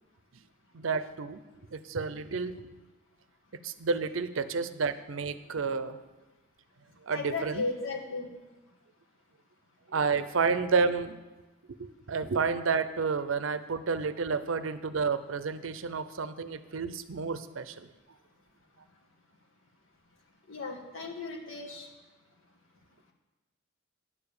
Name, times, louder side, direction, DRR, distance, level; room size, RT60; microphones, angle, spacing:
voice 1, 0.7-1.4 1.7-2.7 3.6-6.0 7.1-7.6 9.9-11.2 11.8-17.9, right 5 dB, 70° right, 12 dB, 0.6 m, -30 dB
voice 2, 7.1-8.3 20.5-21.9, left 3 dB, 70° left, 1 dB, 1.8 m, -35 dB
9.9 x 6.9 x 7.0 m, 1.2 s
head